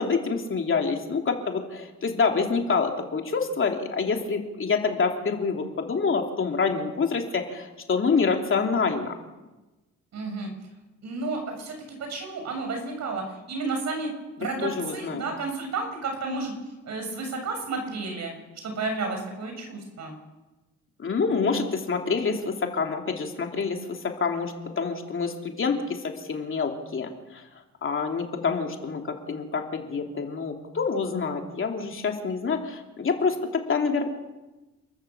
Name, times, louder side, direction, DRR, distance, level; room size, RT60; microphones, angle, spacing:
voice 1, 0.0-9.1 14.6-15.2 21.0-27.5 27.8-34.1, left 5 dB, 45° left, 3 dB, 3.1 m, -27 dB
voice 2, 10.1-10.5 11.0-11.7 12.0-14.1 14.4-16.6 16.8-18.3 18.6-20.2, right 3 dB, 65° right, 4 dB, 7.3 m, -31 dB
29.0 x 13.5 x 7.3 m, 1.1 s
cardioid pair, 90°, 30 cm